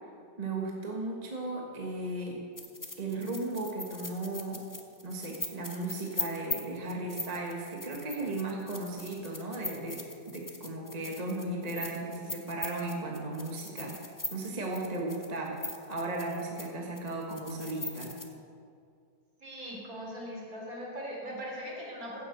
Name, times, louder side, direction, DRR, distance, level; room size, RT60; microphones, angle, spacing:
voice 1, 0.4-2.4 3.0-4.6 5.0-14.0 14.3-18.1, right 2 dB, 25° right, -1 dB, 1.3 m, -36 dB
sound 1, 2.6-16.7 17.0-18.3, left 2 dB, 20° left, 0.6 m, -40 dB
voice 2, 19.4-22.3, equal, 55° right, -4 dB, 3.8 m, -40 dB
15.5 x 7.6 x 6.6 m, 2.4 s
omnidirectional pair, 1.8 m